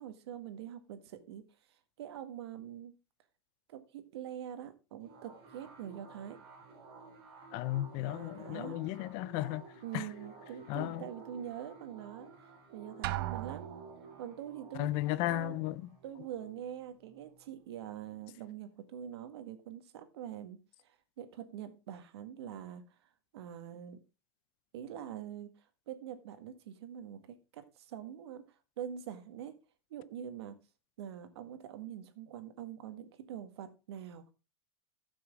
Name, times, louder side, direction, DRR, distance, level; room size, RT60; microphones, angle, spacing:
voice 1, 0.0-3.0 3.7-6.4 8.0-8.8 9.8-13.7 14.2-14.9 15.3-15.6 16.0-22.8 23.3-24.0 24.7-25.5 25.9-27.3 27.5-28.4 28.8-29.6 29.9-30.6 31.0-34.3, right 10 dB, 80° right, 1.7 m, -44 dB
sound 1, 5.0-18.3, right 3 dB, 35° right, 3.0 m, -54 dB
voice 2, 7.5-9.6 9.9-10.1 10.7-11.0 14.8-15.8, left 16 dB, 35° left, 0.5 m, -34 dB
Drum, 13.0-14.2, right 15 dB, 55° right, 0.6 m, -37 dB
15.0 x 6.2 x 3.6 m
supercardioid pair, 165°, 14 cm